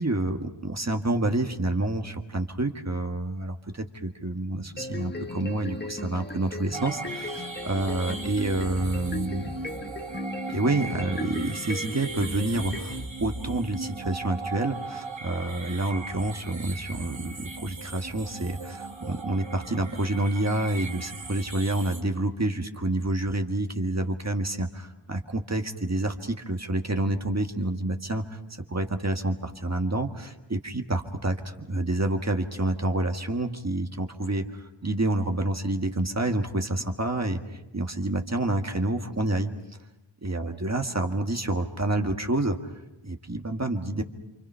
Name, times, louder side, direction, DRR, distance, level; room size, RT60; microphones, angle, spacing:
voice 1, 0.0-9.5 10.5-39.5 40.2-42.7 43.0-44.0, right 2 dB, 35° right, 4 dB, 1.6 m, -28 dB
sound 1, 4.8-13.1, left 1 dB, 25° left, 1.4 m, -37 dB
sound 2, 6.7-22.0, right 3 dB, 90° right, 2.2 m, -38 dB
28.5 x 25.5 x 5.6 m, 0.95 s
wide cardioid pair, 60°, 44 cm